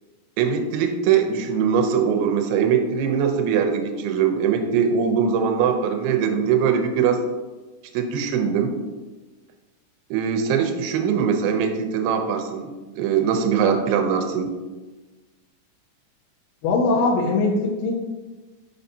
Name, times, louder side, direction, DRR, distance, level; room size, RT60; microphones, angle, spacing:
voice 1, 0.4-7.2 7.9-8.7 10.1-12.7 13.0-14.5, right 7 dB, 80° right, 5 dB, 2.5 m, -21 dB
voice 2, 16.6-17.9, left 3 dB, 75° left, -4 dB, 2.2 m, -21 dB
6.4 x 5.5 x 2.7 m, 1.2 s
omnidirectional pair, 4.7 m